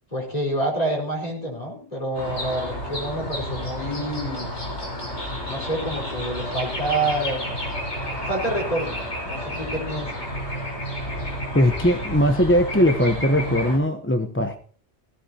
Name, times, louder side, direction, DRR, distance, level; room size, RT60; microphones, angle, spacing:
voice 1, 0.1-4.5 5.5-7.6 8.2-10.2, right 1 dB, 35° left, -1 dB, 4.8 m, -28 dB
sound 1, 2.1-13.8, equal, 90° left, 4.7 m, -31 dB
voice 2, 11.5-14.6, left 1 dB, 10° left, 7 dB, 0.8 m, -20 dB
16.5 x 16.0 x 2.8 m, 0.42 s
omnidirectional pair, 1.1 m